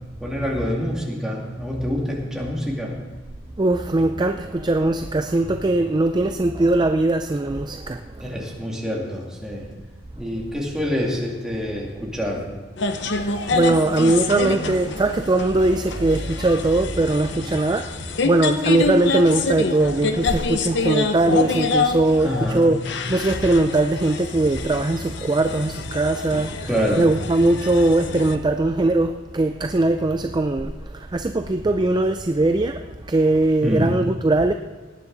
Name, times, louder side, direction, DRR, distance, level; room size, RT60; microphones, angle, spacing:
voice 1, 0.2-3.0 8.2-9.7 10.1-12.5 22.2-22.7 26.6-27.1 33.6-34.0, equal, 5° right, 2.3 m, -26 dB
voice 2, 3.6-8.0 13.2-22.8 23.1-26.7 27.0-34.5, right 2 dB, 20° right, 0.4 m, -20 dB
sound 1, 12.8-28.3, left 4 dB, 60° left, 0.8 m, -27 dB
18.5 x 9.6 x 4.0 m
head